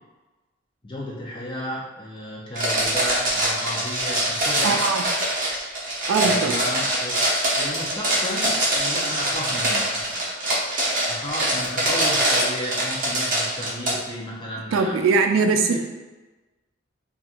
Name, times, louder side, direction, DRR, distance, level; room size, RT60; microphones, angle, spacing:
voice 1, 0.8-4.8 6.2-7.2 7.6-10.3 11.1-15.0 15.7-15.8, left 1 dB, 25° left, -4 dB, 0.5 m, -33 dB
sound 1, 2.5-13.9, right 1 dB, 40° right, 0.7 m, -23 dB
voice 2, 4.6-5.0 6.1-6.5 14.7-15.8, right 4 dB, 85° right, 5 dB, 0.3 m, -21 dB
2.9 x 2.4 x 2.4 m, 1.2 s
head